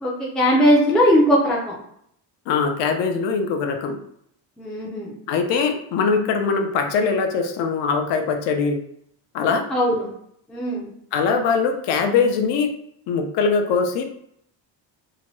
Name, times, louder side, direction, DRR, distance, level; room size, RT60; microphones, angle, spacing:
voice 1, 0.0-1.7 4.6-5.1 9.7-10.1 10.5-10.9, equal, ahead, -4 dB, 0.3 m, -19 dB
voice 2, 2.5-4.0 5.3-8.8 9.3-9.6 11.1-12.7 13.1-14.0, left 5 dB, 70° left, 5 dB, 0.6 m, -21 dB
2.8 x 2.2 x 2.9 m, 0.70 s
cardioid pair, 160°, 44 cm